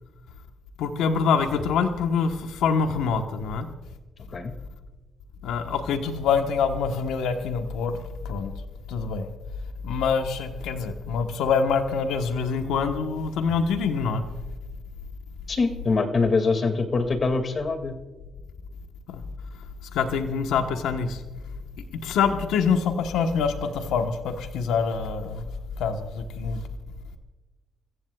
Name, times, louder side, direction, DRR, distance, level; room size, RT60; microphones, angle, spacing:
voice 1, 0.8-3.7 5.4-8.0 8.2-8.5 8.9-9.3 9.8-14.2 19.1-19.2 19.9-21.2 22.0-25.5 25.8-26.6, left 5 dB, 85° left, 6 dB, 1.1 m, -25 dB
voice 2, 15.5-18.0, left 4 dB, 40° left, 7 dB, 2.2 m, -24 dB
28.5 x 15.5 x 2.4 m, 1.2 s
cardioid pair, 90°, 0 cm